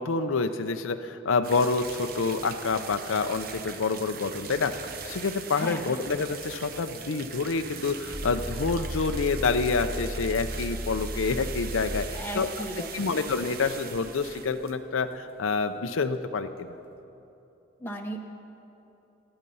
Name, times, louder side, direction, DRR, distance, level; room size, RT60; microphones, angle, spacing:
voice 1, 0.0-12.5 12.9-16.8, left 4 dB, 85° left, 8 dB, 0.6 m, -28 dB
sound 1, 1.4-15.8 16.0-16.1 16.3-16.5 16.9-17.0, right 6 dB, 45° right, 0.9 m, -41 dB
voice 2, 5.6-6.0 12.1-13.3 17.8-18.2, right 1 dB, 10° left, 0 dB, 0.8 m, -36 dB
sound 2, 7.0-12.1, equal, 10° right, 1.7 m, -36 dB
26.5 x 8.9 x 5.5 m, 3.0 s
head